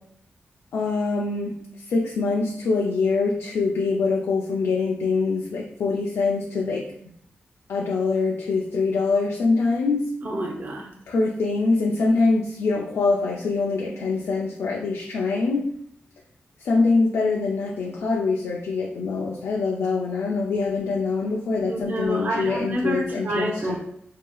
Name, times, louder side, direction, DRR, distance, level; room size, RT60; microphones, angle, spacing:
voice 1, 0.7-6.8 7.7-10.1 11.1-15.7 16.6-23.8, left 3 dB, 90° left, -2 dB, 0.4 m, -24 dB
voice 2, 10.2-10.9 21.6-23.8, right 1 dB, 45° right, -1 dB, 0.6 m, -28 dB
4.6 x 2.8 x 2.3 m, 0.69 s
wide cardioid pair, 110°, 4 cm